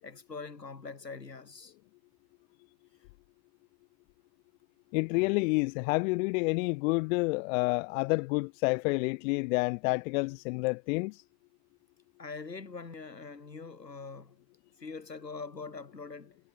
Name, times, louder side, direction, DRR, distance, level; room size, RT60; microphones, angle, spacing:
voice 1, 0.0-1.7 12.2-14.4 14.8-16.4, left 4 dB, 85° left, 7.2 m, -43 dB
voice 2, 4.9-11.2, left 27 dB, 55° left, 1.3 m, -29 dB
figure-of-eight pair, 70°, 48 cm